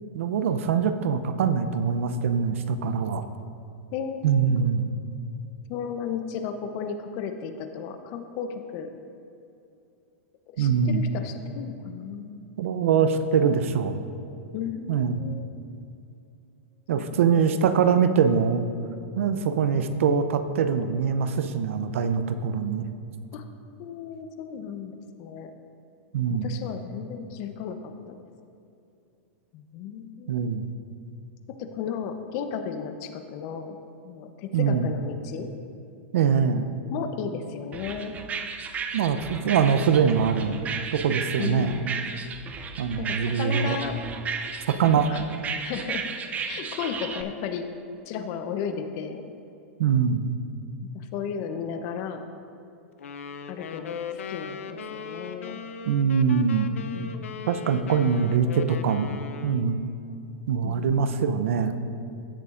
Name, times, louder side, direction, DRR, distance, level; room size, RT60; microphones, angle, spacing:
voice 1, 0.1-3.3 4.2-4.9 10.6-11.0 12.6-14.0 14.9-15.2 16.9-18.6 19.2-22.8 26.1-26.5 30.3-30.7 34.5-34.9 36.1-36.7 38.9-40.6 40.9-41.9 42.8-43.8 44.7-45.1 49.8-50.3 55.9-56.7 57.5-59.1 59.4-59.8 60.5-61.8, right 6 dB, 75° right, 10 dB, 0.6 m, -23 dB
voice 2, 3.9-4.6 5.7-8.9 10.6-12.6 14.5-15.5 17.0-17.5 23.3-23.5 23.8-25.5 26.3-27.8 28.1-28.2 29.5-30.4 31.6-33.8 34.0-35.5 36.9-38.1 41.4-41.9 43.0-44.0 45.1-45.3 45.6-46.0 46.4-47.6 48.0-49.2 50.9-52.2 53.5-55.6 56.9-57.3 60.6-61.0, left 7 dB, 45° left, 8 dB, 0.7 m, -34 dB
sound 1, 37.7-47.2, right 6 dB, 20° right, 0.5 m, -34 dB
sound 2, 53.0-59.8, left 6 dB, 85° left, 0.5 m, -38 dB
15.0 x 6.8 x 2.5 m, 2.6 s
hypercardioid pair, 130°, 7 cm